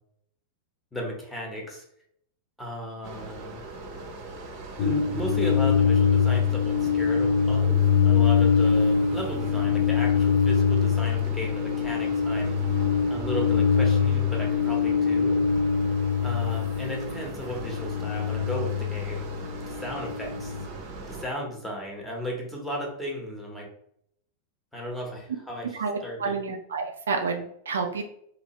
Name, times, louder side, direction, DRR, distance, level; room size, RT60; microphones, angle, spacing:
voice 1, 0.9-1.8 2.6-3.6 4.8-12.6 13.1-15.4 16.2-19.3 19.7-20.6 21.1-23.7 24.7-26.4, equal, 5° left, -1 dB, 1.0 m, -35 dB
sound 1, 3.0-21.3, right 3 dB, 40° right, 0.7 m, -40 dB
sound 2, 4.8-20.7, left 6 dB, 45° left, 0.4 m, -24 dB
voice 2, 25.7-28.0, right 4 dB, 70° right, 4 dB, 0.4 m, -29 dB
2.8 x 2.6 x 3.0 m, 0.71 s
figure-of-eight pair, 90°, 0 cm